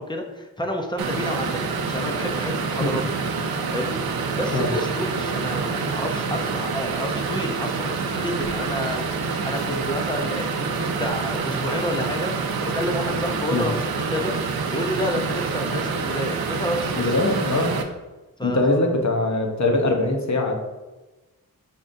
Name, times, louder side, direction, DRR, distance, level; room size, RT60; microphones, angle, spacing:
voice 1, 0.0-3.0 3.7-4.0 4.4-12.3 12.6-13.8 14.1-17.1 18.4-18.9, equal, 15° left, 2 dB, 0.6 m, -29 dB
sound 1, 1.0-17.8, right 4 dB, 80° right, 0.5 m, -27 dB
voice 2, 17.0-17.7 18.4-20.5, left 2 dB, 50° left, 3 dB, 0.8 m, -22 dB
5.4 x 3.7 x 2.6 m, 1.1 s
wide cardioid pair, 105°, 36 cm